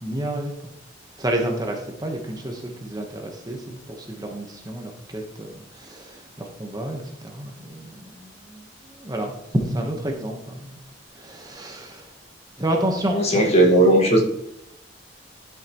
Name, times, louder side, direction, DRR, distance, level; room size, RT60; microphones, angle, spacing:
voice 1, 0.0-0.7 1.2-10.8 11.2-12.1 12.6-13.7, right 1 dB, 20° right, 2 dB, 1.1 m, -30 dB
voice 2, 13.1-14.2, right 1 dB, 35° left, 1 dB, 1.7 m, -16 dB
11.5 x 5.8 x 3.0 m, 0.80 s
head